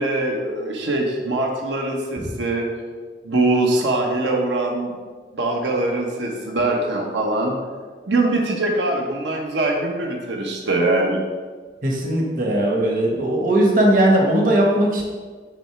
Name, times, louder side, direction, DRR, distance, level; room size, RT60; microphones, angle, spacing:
voice 1, 0.0-2.7 3.2-4.9 5.3-7.5 8.1-11.2, right 2 dB, 90° right, 0 dB, 0.9 m, -22 dB
voice 2, 11.8-15.0, right 1 dB, 50° right, -1 dB, 1.0 m, -18 dB
6.2 x 3.2 x 5.7 m, 1.5 s
head